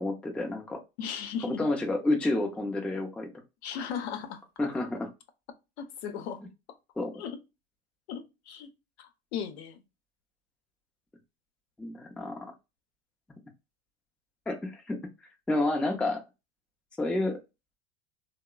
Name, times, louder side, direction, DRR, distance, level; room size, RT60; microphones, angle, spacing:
voice 1, 0.0-0.8 1.4-3.3 4.6-5.1 7.0-7.1 11.8-12.4 14.5-15.0 15.5-16.2 17.0-17.4, left 2 dB, 5° left, 0.4 m, -29 dB
voice 2, 1.0-1.7 3.6-4.4 5.8-6.4 7.2-7.4 8.1-8.7 9.0-9.8, left 7 dB, 75° left, 0.7 m, -36 dB
2.9 x 2.0 x 2.3 m
hypercardioid pair, 100°, 33 cm